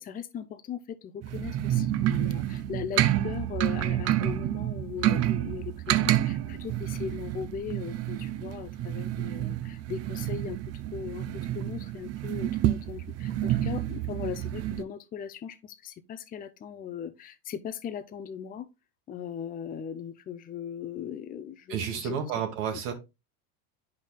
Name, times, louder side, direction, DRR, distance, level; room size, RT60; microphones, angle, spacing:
voice 1, 0.0-10.6 10.9-18.7 19.1-22.2, left 8 dB, 20° left, 0.5 m, -39 dB
sound 1, 1.2-14.8, right 13 dB, 35° right, 0.5 m, -29 dB
voice 2, 21.7-22.9, right 7 dB, 70° right, 1.4 m, -31 dB
8.8 x 5.4 x 2.2 m
supercardioid pair, 110°, 44 cm